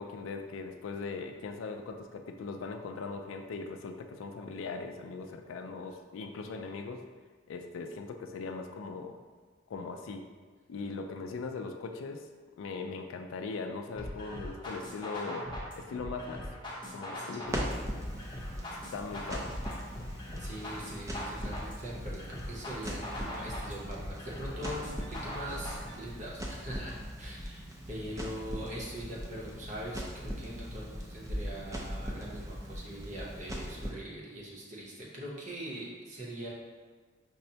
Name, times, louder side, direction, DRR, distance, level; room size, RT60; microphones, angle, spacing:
voice 1, 0.0-7.0 7.5-9.2 9.7-10.3 10.7-12.3 12.6-15.5 15.8-16.5 16.9-17.7 18.9-19.5, left 4 dB, 80° left, 5 dB, 0.3 m, -39 dB
sound 1, 14.0-26.0, left 1 dB, 25° left, 0.6 m, -41 dB
Crackle, 17.5-33.9, equal, 15° right, 0.4 m, -40 dB
voice 2, 20.4-36.5, equal, 35° right, -4 dB, 0.7 m, -42 dB
5.2 x 2.1 x 2.7 m, 1.4 s
head